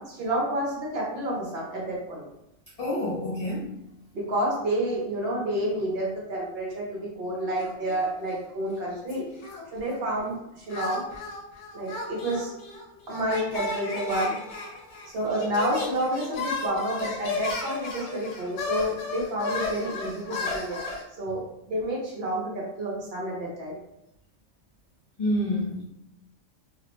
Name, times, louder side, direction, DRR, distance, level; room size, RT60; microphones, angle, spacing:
voice 1, 0.0-2.2 4.1-9.2 9.7-11.0 11.7-12.5 13.1-14.4 15.1-20.8 21.2-21.4 21.7-23.8, right 1 dB, 60° right, -3 dB, 0.8 m, -29 dB
voice 2, 2.8-3.7 25.2-25.9, left 1 dB, 45° left, -9 dB, 0.5 m, -27 dB
sound 1, 7.6-8.4 8.7-10.0 10.7-21.0, left 3 dB, 70° left, 0.9 m, -34 dB
2.4 x 2.0 x 2.9 m, 0.83 s
omnidirectional pair, 1.3 m